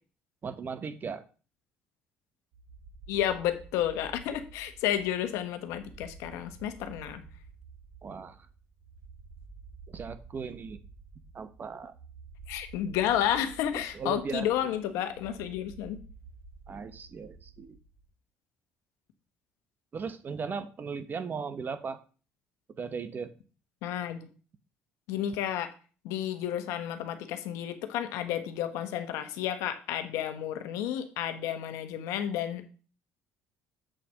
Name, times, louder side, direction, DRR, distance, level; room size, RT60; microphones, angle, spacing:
voice 1, 0.4-1.2 8.0-8.5 9.9-10.8 11.3-11.9 13.7-14.5 16.7-17.8 19.9-22.0 22.8-23.3, right 5 dB, 40° right, 12 dB, 1.0 m, -37 dB
sound 1, 2.5-18.1, right 4 dB, 60° right, 4.1 m, -51 dB
voice 2, 3.1-7.2 12.5-16.0 23.8-24.3 25.1-25.7 26.0-32.7, left 11 dB, 80° left, 9 dB, 1.1 m, -31 dB
7.7 x 4.3 x 6.4 m, 0.38 s
supercardioid pair, 80°, 5 cm